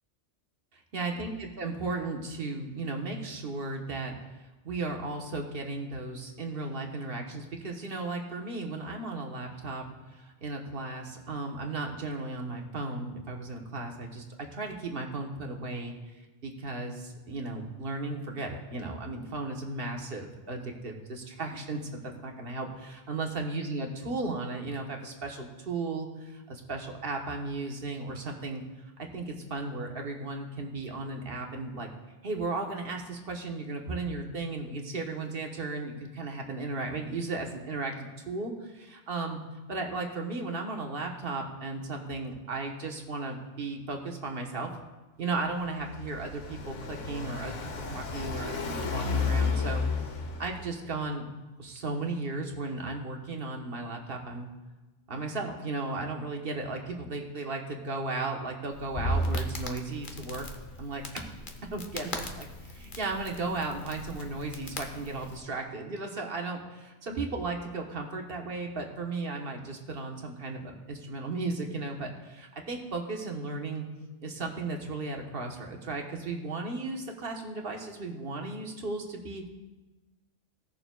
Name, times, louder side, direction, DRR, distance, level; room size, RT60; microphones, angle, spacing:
voice 1, 0.7-4.2 4.6-9.8 10.1-15.9 16.4-28.6 29.0-31.9 32.2-37.9 38.3-39.4 39.7-44.8 45.2-49.8 50.4-51.2 51.6-54.5 55.1-60.5 60.8-61.3 61.7-73.8 74.2-79.5, right 3 dB, 50° right, 2 dB, 1.3 m, -35 dB
Car passing by, 45.4-50.9, left 4 dB, 80° left, 1.2 m, -32 dB
Crackle, 58.7-65.4, equal, 45° left, 1.0 m, -36 dB
17.0 x 6.8 x 2.3 m, 1.2 s
omnidirectional pair, 1.2 m